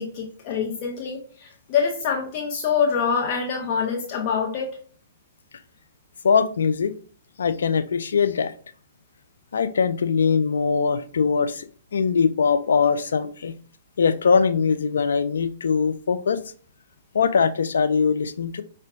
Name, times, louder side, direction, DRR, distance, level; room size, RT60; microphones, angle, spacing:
voice 1, 0.0-4.7, left 6 dB, 45° left, 1 dB, 0.7 m, -25 dB
voice 2, 6.2-6.9 7.4-8.5 9.5-11.7 11.9-13.5 14.0-16.4 17.1-18.6, left 5 dB, 75° left, 11 dB, 0.3 m, -21 dB
5.1 x 2.1 x 2.6 m, 0.44 s
hypercardioid pair, 115°, 0 cm